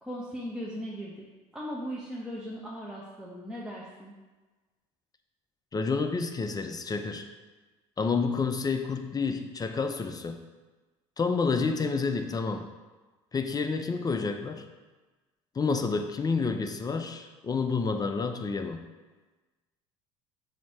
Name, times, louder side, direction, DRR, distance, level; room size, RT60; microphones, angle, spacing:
voice 1, 0.0-1.2 1.5-4.1, equal, 5° right, -5 dB, 0.9 m, -38 dB
voice 2, 5.7-7.3 8.0-10.4 11.2-12.7 13.3-14.6 15.6-18.8, left 4 dB, 25° left, 6 dB, 0.5 m, -29 dB
7.3 x 2.8 x 4.7 m, 1.2 s
hypercardioid pair, 80°, 16 cm